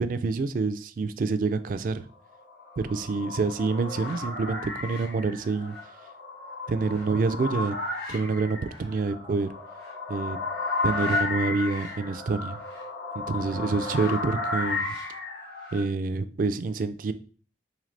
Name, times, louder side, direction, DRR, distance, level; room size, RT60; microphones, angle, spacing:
voice 1, 0.0-2.1 2.8-5.8 6.7-7.8 8.1-9.5 10.1-10.4 10.8-12.6 13.1-15.0 15.7-17.1, right 4 dB, 50° right, 11 dB, 0.3 m, -27 dB
sound 1, 2.4-15.9, left 3 dB, 70° left, 1.2 m, -33 dB
3.8 x 3.3 x 3.2 m, 0.41 s
head